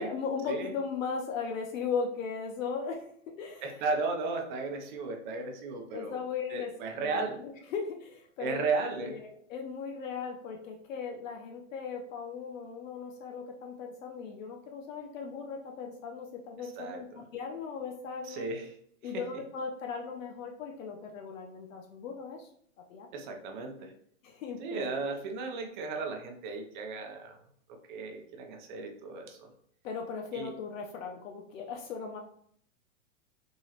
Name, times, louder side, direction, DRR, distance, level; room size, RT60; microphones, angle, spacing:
voice 1, 0.0-3.1 3.4-3.9 5.9-6.7 7.0-8.6 9.0-18.5 19.0-22.5 22.9-23.1 24.2-24.9 29.8-32.2, left 5 dB, 70° left, 3 dB, 0.7 m, -37 dB
voice 2, 3.6-6.2 6.5-7.3 8.4-9.2 16.8-17.0 18.3-18.6 23.1-23.9 24.6-27.4 27.9-29.5 30.3-30.5, right 4 dB, 35° right, 3 dB, 0.6 m, -35 dB
3.8 x 2.9 x 2.8 m, 0.64 s
supercardioid pair, 155°, 41 cm